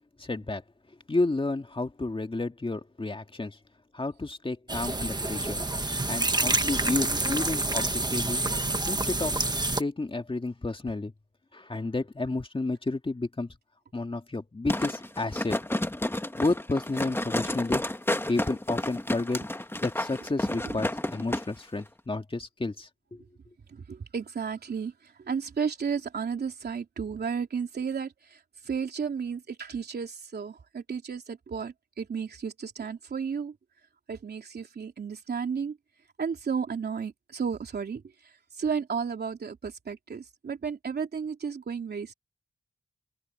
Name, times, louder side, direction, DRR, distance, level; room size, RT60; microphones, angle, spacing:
voice 1, 0.2-0.6 1.1-3.6 3.9-5.6 6.1-8.4 8.9-9.4 9.8-11.1 11.5-13.5 13.9-15.6 16.4-17.8 18.3-19.4 19.8-23.2, left 2 dB, 35° left, 2.2 m, -31 dB
sound 1, 4.7-9.8, right 2 dB, 25° right, 1.5 m, -28 dB
sound 2, 14.7-21.4 21.8-21.9, left 1 dB, 15° left, 1.5 m, -31 dB
voice 2, 23.7-33.5 34.1-35.8 36.2-42.1, right 6 dB, 80° right, 3.3 m, -33 dB
cardioid pair, 60°, 16 cm